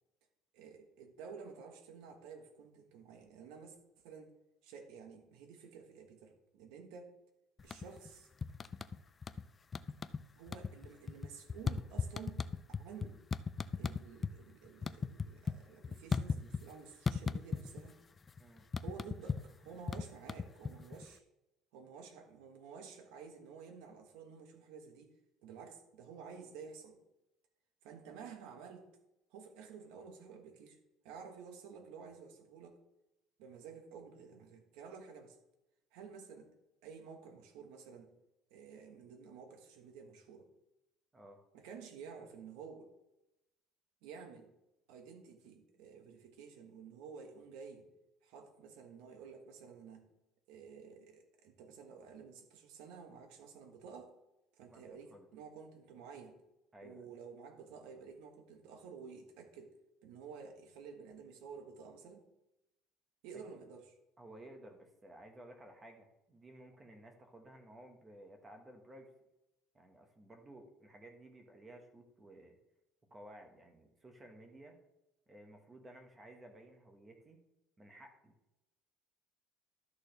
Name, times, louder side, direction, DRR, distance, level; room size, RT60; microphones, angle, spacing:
voice 1, 0.5-3.8 4.0-4.3 4.6-7.1 7.6-8.3 10.4-12.4 12.8-13.3 13.8-18.0 18.8-21.2 21.7-25.1 25.4-27.0 27.8-28.9 29.3-30.8 31.0-32.8 33.4-35.4 35.9-36.5 36.8-38.1 38.5-40.5 41.5-42.9 44.0-44.5 44.9-47.9 48.2-50.1 50.5-54.1 54.6-56.4 56.8-59.8 60.0-62.2 63.2-64.0, right 6 dB, 90° right, 6 dB, 1.5 m, -52 dB
sound 1, 7.6-8.1 8.4-9.4 9.7-10.2 10.5-14.3 14.6-16.7 17.1-17.9 18.2-21.1, left 5 dB, 20° left, 0.3 m, -37 dB
voice 2, 56.7-57.1 63.3-63.4 64.2-69.1 69.7-72.6 73.1-74.8 75.3-77.5 77.8-78.3, right 1 dB, 15° right, 4 dB, 1.5 m, -55 dB
12.5 x 6.5 x 3.3 m, 0.92 s
cardioid pair, 145°, 0 cm